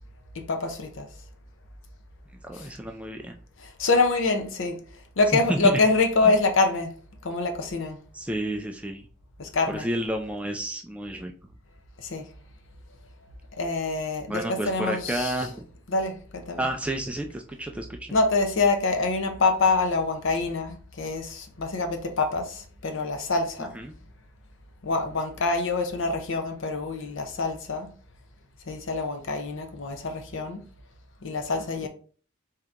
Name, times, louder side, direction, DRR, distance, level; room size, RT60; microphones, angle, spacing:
voice 1, 0.3-1.1 2.5-2.7 3.6-4.8 5.2-6.9 7.2-8.0 9.4-9.9 12.0-12.2 13.6-15.3 15.9-16.6 18.1-23.7 24.8-27.9 28.7-30.6 31.2-31.9, left 3 dB, 60° left, 0.7 m, -25 dB
voice 2, 2.4-3.4 5.3-5.8 8.1-9.0 9.7-11.3 14.3-15.7 16.6-18.1 23.7-23.9 31.8-31.9, right 1 dB, 5° right, 0.3 m, -30 dB
3.7 x 2.8 x 3.5 m
head